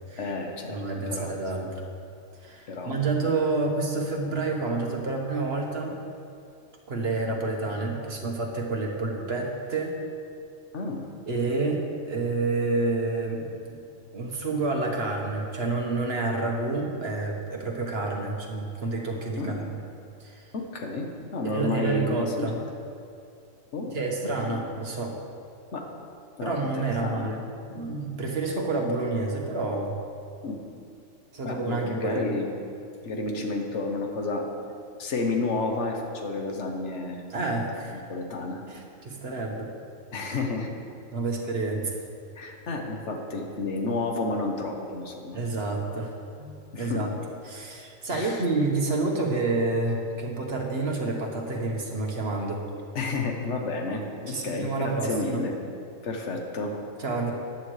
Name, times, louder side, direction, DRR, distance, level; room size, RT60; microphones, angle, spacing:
voice 1, 0.2-1.4 1.6-1.7 2.7-2.9 10.7-11.0 19.4-19.6 20.5-22.5 23.7-23.9 24.4-24.6 25.7-25.9 26.4-27.2 30.4-30.6 31.4-32.5 33.0-34.5 35.0-37.2 38.1-38.6 40.1-40.7 42.4-45.4 46.7-47.1 48.1-48.4 52.9-55.6 56.0-56.8, left 3 dB, 60° left, 2 dB, 1.5 m, -31 dB
voice 2, 0.7-1.8 2.4-6.0 6.9-10.0 11.3-13.8 14.1-19.6 20.2-20.4 21.4-22.6 23.9-25.1 26.4-29.9 31.3-32.4 37.3-38.0 38.7-39.7 41.1-41.9 45.3-47.1 47.4-52.6 54.3-55.5 57.0-57.3, right 3 dB, 50° right, 0 dB, 1.5 m, -29 dB
14.0 x 10.0 x 3.3 m, 2.4 s
omnidirectional pair, 1.4 m